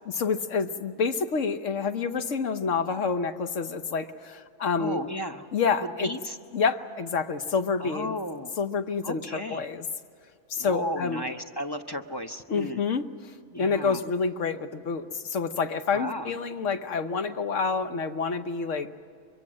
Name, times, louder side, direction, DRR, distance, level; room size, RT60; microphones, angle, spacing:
voice 1, 0.1-5.0 5.5-6.1 6.5-8.1 8.6-9.8 10.5-11.2 12.5-13.0 13.5-18.9, left 5 dB, 65° left, 9 dB, 1.3 m, -28 dB
voice 2, 4.8-5.5 5.8-6.4 7.8-8.5 9.0-9.7 10.5-12.8 13.5-14.0 15.9-16.3, left 1 dB, 20° left, 5 dB, 0.7 m, -34 dB
24.0 x 23.0 x 7.5 m, 2.4 s
omnidirectional pair, 1.4 m